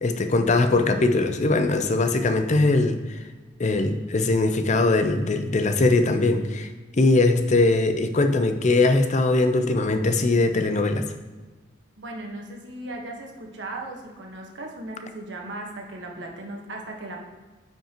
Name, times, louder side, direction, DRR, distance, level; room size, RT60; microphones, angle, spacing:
voice 1, 0.0-3.2 3.6-11.1, left 2 dB, 40° left, 7 dB, 0.5 m, -21 dB
voice 2, 12.0-17.2, right 2 dB, 75° right, 0 dB, 1.3 m, -37 dB
9.8 x 5.3 x 3.0 m, 1.3 s
head